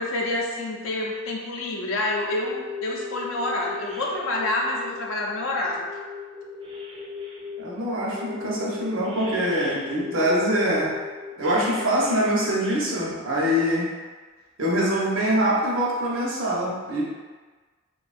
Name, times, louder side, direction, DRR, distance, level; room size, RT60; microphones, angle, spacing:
voice 1, 0.0-5.9, left 2 dB, 75° left, -2 dB, 0.5 m, -28 dB
sound 1, 2.0-7.6 8.1-12.8, left 4 dB, 25° right, 0.4 m, -38 dB
voice 2, 7.6-11.0 11.4-13.9 14.6-17.0, equal, 70° right, -5 dB, 0.7 m, -24 dB
2.6 x 2.2 x 2.4 m, 1.4 s
head